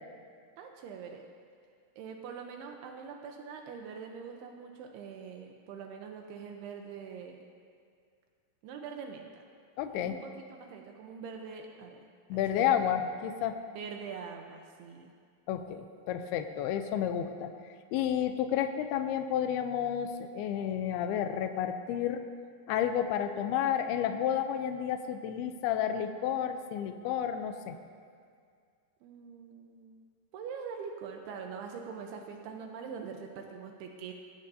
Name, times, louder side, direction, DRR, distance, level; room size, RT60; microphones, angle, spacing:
voice 1, 0.6-1.2 2.0-7.4 8.6-9.4 9.9-12.0 12.3-12.7 13.7-15.1 29.0-30.1 30.3-34.1, right 6 dB, 85° right, 3 dB, 2.9 m, -43 dB
voice 2, 9.8-10.2 12.3-13.6 15.5-17.5 17.9-22.2 22.7-27.7, left 9 dB, 80° left, 7 dB, 2.6 m, -31 dB
20.5 x 16.0 x 2.8 m, 2.2 s
omnidirectional pair, 4.6 m